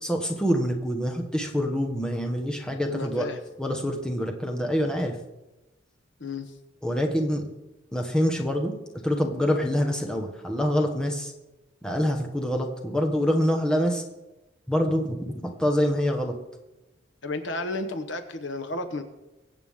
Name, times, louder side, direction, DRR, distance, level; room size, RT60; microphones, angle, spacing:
voice 1, 0.0-3.3 3.6-5.2 6.8-7.5 7.9-8.7 9.0-11.3 11.8-14.0 14.7-16.4, equal, 5° left, 2 dB, 1.3 m, -26 dB
voice 2, 2.8-3.4 6.2-6.5 17.2-19.0, left 2 dB, 65° left, 8 dB, 1.1 m, -32 dB
23.0 x 8.1 x 3.7 m, 1.0 s
head